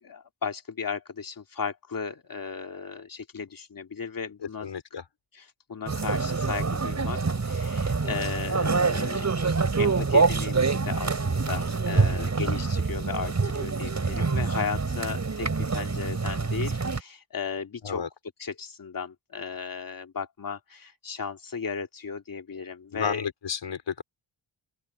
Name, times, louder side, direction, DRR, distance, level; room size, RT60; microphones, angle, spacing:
voice 1, 0.0-4.7 5.3-18.0 18.4-23.3, left 6 dB, 45° left, 2.8 m, -35 dB
voice 2, 4.6-5.0 11.9-12.3 17.8-18.1 22.9-24.0, left 7 dB, 70° left, 4.8 m, -32 dB
sound 1, 5.9-17.0, right 4 dB, 35° right, 4.6 m, -26 dB
open air
wide cardioid pair, 110°, 46 cm